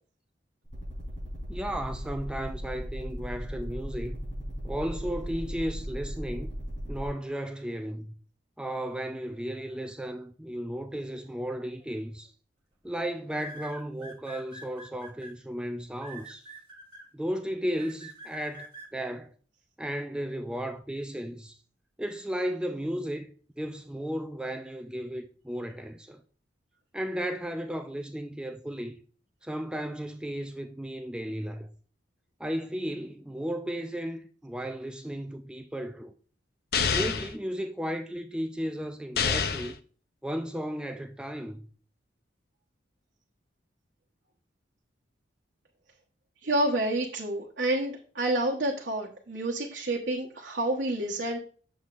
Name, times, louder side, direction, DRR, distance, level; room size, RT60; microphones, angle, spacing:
sound 1, 0.6-7.1, equal, 40° left, 3.8 m, -37 dB
voice 1, 1.5-4.2 4.6-6.5 6.9-8.1 8.6-12.3 12.8-16.5 17.1-19.3 19.8-21.6 22.0-23.3 23.6-26.2 26.9-29.0 29.4-31.7 32.4-36.1 36.9-39.8 40.2-41.7, equal, 5° right, 0.3 m, -34 dB
sound 2, 11.8-12.1 13.3-15.3 16.0-17.0 17.8-18.9, right 1 dB, 30° right, 1.9 m, -45 dB
sound 3, 36.7-37.3 39.2-39.8, left 6 dB, 55° left, 0.6 m, -27 dB
voice 2, 46.4-51.4, right 1 dB, 70° right, 1.0 m, -29 dB
7.9 x 7.1 x 2.5 m
head